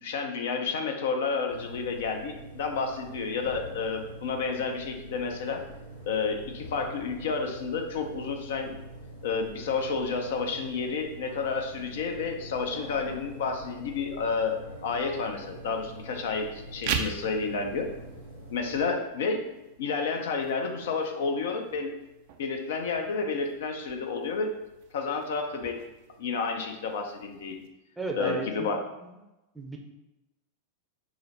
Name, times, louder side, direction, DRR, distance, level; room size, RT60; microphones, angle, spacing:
voice 1, 0.0-5.6 6.0-8.7 9.2-17.9 18.5-19.5 19.8-21.9 22.4-24.5 24.9-25.8 26.2-27.6 28.1-28.8, left 4 dB, 55° left, 4 dB, 0.5 m, -30 dB
sound 1, 1.5-18.9, right 1 dB, 85° left, 1.0 m, -45 dB
sound 2, 16.7-27.7, right 7 dB, 50° right, 0.4 m, -41 dB
voice 2, 28.0-28.7 29.0-29.1 29.5-29.8, right 3 dB, 10° right, 1 dB, 0.6 m, -34 dB
4.8 x 2.0 x 4.1 m, 0.99 s
figure-of-eight pair, 90°, 0 cm